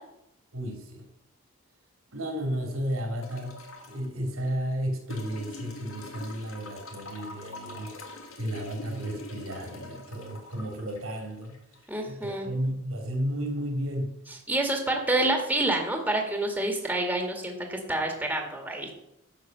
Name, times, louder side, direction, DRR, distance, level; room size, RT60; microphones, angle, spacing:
voice 1, 0.5-1.1 2.1-8.0 8.4-11.6 12.1-14.2, equal, 80° right, 3 dB, 3.1 m, -33 dB
sound 1, 3.2-4.1 5.1-12.1 13.5-13.6, left 2 dB, 80° left, 2.0 m, -44 dB
voice 2, 11.9-12.5 14.5-18.9, right 2 dB, 10° right, 2 dB, 1.9 m, -28 dB
11.0 x 6.8 x 6.8 m, 0.84 s
head